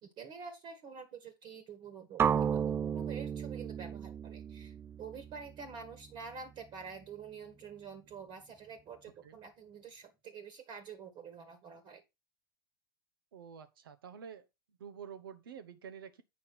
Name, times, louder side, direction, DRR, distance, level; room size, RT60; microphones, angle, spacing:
voice 1, 0.0-12.0, right 6 dB, 40° right, 1.9 m, -48 dB
sound 1, 2.2-6.2, right 8 dB, 20° right, 0.4 m, -34 dB
voice 2, 13.3-14.4 14.8-16.2, right 7 dB, 70° right, 1.1 m, -48 dB
8.4 x 5.7 x 4.3 m
figure-of-eight pair, 80°, 12 cm